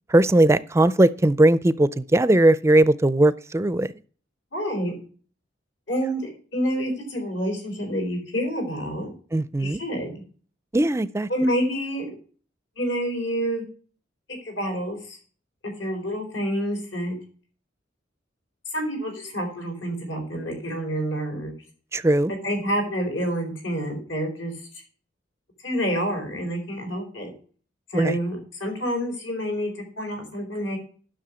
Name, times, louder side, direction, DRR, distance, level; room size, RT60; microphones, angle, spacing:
voice 1, 0.1-3.9 9.3-9.8 10.7-11.3 21.9-22.3 27.9-28.2, right 1 dB, 15° right, 0.4 m, -19 dB
voice 2, 4.5-4.9 5.9-9.1 9.6-10.2 11.3-12.1 12.8-13.6 14.4-15.2 15.8-17.2 18.7-21.5 22.4-24.5 25.6-27.3 27.9-30.8, equal, 85° left, 4.4 m, -28 dB
10.5 x 6.4 x 6.2 m
head